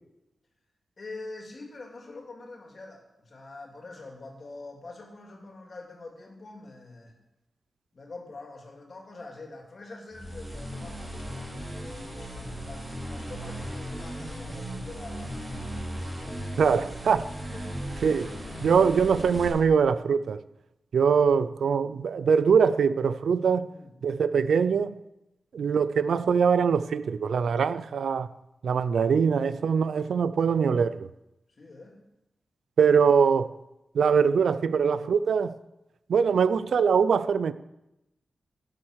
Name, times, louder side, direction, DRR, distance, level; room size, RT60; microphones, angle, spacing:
voice 1, 1.0-7.1 7.9-15.7 16.5-16.6 17.5-17.8 23.7-23.9 31.6-32.0, left 2 dB, 40° left, 2.7 m, -45 dB
sound 1, 10.1-19.5, right 1 dB, 10° right, 4.8 m, -37 dB
sound 2, 10.2-19.8, left 3 dB, 80° left, 2.2 m, -47 dB
voice 2, 16.6-17.3 18.0-18.3 18.6-20.4 20.9-23.7 24.0-24.9 25.5-28.3 28.6-31.1 32.8-33.5 33.9-35.5 36.1-37.5, right 6 dB, 90° right, 0.5 m, -23 dB
16.0 x 7.6 x 6.5 m
wide cardioid pair, 165°, 0 cm